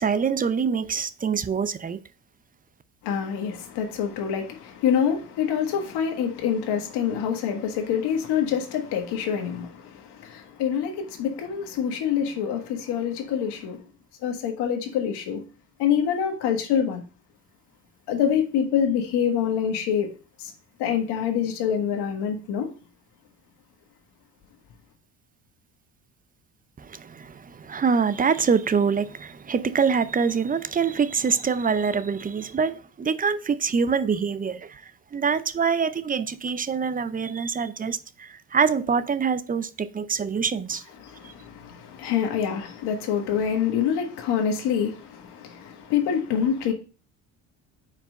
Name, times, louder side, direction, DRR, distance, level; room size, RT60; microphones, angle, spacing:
voice 1, 0.0-2.0 26.8-34.8 35.1-40.8 41.2-41.3, right 6 dB, 20° right, 0.5 m, -25 dB
voice 2, 3.0-13.8 14.2-15.4 15.8-17.0 18.1-20.1 20.4-20.5 20.8-22.7 41.0-46.7, left 8 dB, 70° left, 1.5 m, -26 dB
4.8 x 4.4 x 5.2 m
hypercardioid pair, 65°, 41 cm